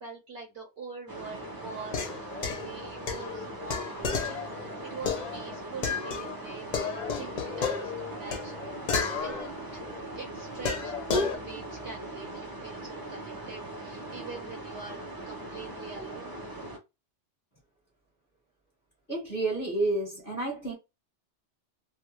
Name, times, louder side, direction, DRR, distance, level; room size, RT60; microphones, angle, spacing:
voice 1, 0.0-9.8 10.1-16.3, right 4 dB, 60° right, 1.1 m, -44 dB
sound 1, 1.1-16.8, right 2 dB, 25° right, 0.5 m, -40 dB
sound 2, 1.8-6.4 6.7-10.0 10.6-11.4, left 5 dB, 50° left, 0.6 m, -32 dB
voice 2, 19.1-20.7, right 2 dB, 15° left, 1.0 m, -30 dB
2.5 x 2.3 x 2.9 m
omnidirectional pair, 1.2 m